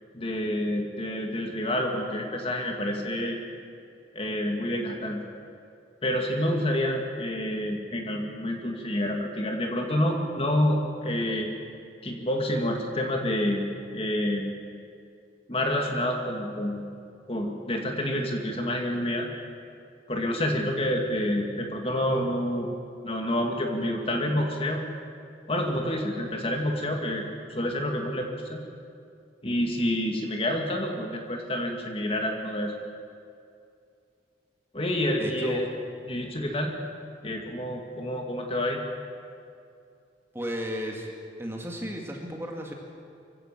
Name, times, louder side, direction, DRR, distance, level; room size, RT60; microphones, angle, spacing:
voice 1, 0.1-3.4 4.1-5.2 6.0-11.5 12.0-13.6 13.9-14.5 15.5-16.8 17.3-19.3 20.1-22.7 23.0-24.8 25.5-27.2 27.5-28.6 29.4-32.7 34.7-35.7 36.1-36.7 37.2-38.8, left 1 dB, 30° left, 2 dB, 2.3 m, -28 dB
voice 2, 35.2-35.6 40.3-41.1 41.4-42.7, equal, 15° right, 1 dB, 2.2 m, -34 dB
24.0 x 16.5 x 7.5 m, 2.4 s
head